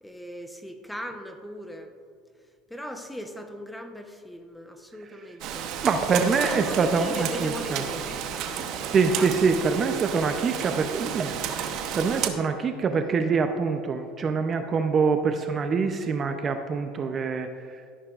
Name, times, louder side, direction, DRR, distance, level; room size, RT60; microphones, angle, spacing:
voice 1, 0.0-1.9 2.7-5.7 6.3-8.7 9.2-9.6, equal, 5° left, 6 dB, 0.8 m, -39 dB
Rain, 5.4-12.3, right 8 dB, 55° right, 0.9 m, -32 dB
voice 2, 5.8-7.8 8.9-17.5, right 5 dB, 30° right, 7 dB, 0.6 m, -25 dB
12.5 x 11.0 x 2.4 m, 2.2 s
supercardioid pair, 120°, 0 cm